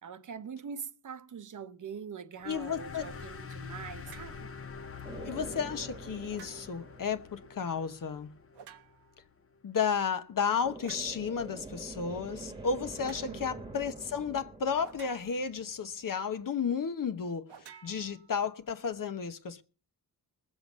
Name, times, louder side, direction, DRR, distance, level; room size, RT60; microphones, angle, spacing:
voice 1, 0.0-4.5 13.3-13.4, right 6 dB, 50° right, 0.8 m, -43 dB
voice 2, 2.4-3.0 5.2-8.3 9.6-19.6, left 6 dB, 55° left, 1.1 m, -33 dB
sound 1, 2.4-9.5, left 5 dB, 35° left, 0.9 m, -46 dB
sound 2, 4.0-4.4 6.3-6.9 8.5-9.2 10.8-11.2 13.0-13.3 14.8-15.6 17.5-18.6, right 8 dB, 85° right, 1.0 m, -53 dB
sound 3, 5.0-7.8 10.6-16.0, right 2 dB, 10° right, 1.4 m, -46 dB
20.0 x 7.9 x 5.3 m
cardioid pair, 90°, 40 cm